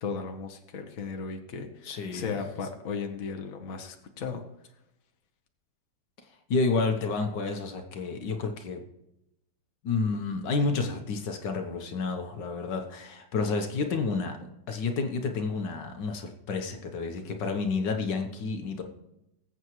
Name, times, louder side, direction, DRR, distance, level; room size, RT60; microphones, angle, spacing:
voice 1, 0.0-4.4, left 5 dB, 50° left, 4 dB, 1.5 m, -36 dB
voice 2, 1.8-2.7 6.5-8.8 9.8-14.3 14.7-18.8, left 4 dB, 75° left, 5 dB, 1.8 m, -30 dB
20.0 x 8.1 x 3.1 m, 0.88 s
omnidirectional pair, 1.9 m